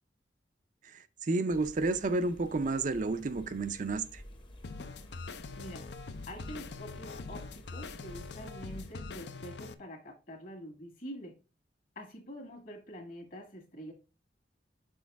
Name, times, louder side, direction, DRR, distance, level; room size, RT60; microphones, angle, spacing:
voice 1, 0.8-4.2, right 3 dB, 45° right, 0.4 m, -31 dB
sound 1, 1.5-9.0, left 1 dB, 30° left, 0.9 m, -52 dB
sound 2, 4.6-9.7, left 4 dB, 70° left, 0.5 m, -43 dB
voice 2, 5.5-5.9 6.3-11.4 12.0-13.9, equal, 50° left, 1.8 m, -46 dB
6.2 x 4.7 x 3.5 m
head